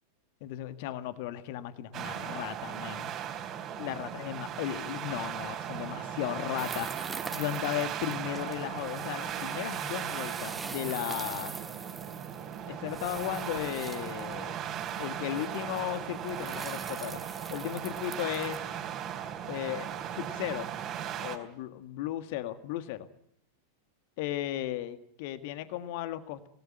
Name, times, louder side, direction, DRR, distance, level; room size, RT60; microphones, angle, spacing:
voice 1, 0.4-3.1 3.8-11.6 12.7-14.6 15.0-17.2 17.5-18.6 19.5-19.9 20.1-20.7 21.2-23.1 24.2-26.5, left 13 dB, 50° left, 11 dB, 1.7 m, -36 dB
sound 1, 1.9-21.4, right 9 dB, 35° right, 3.7 m, -37 dB
sound 2, 6.6-18.6, right 4 dB, 15° right, 2.2 m, -45 dB
26.0 x 19.0 x 9.5 m, 0.70 s
figure-of-eight pair, 90°, 0 cm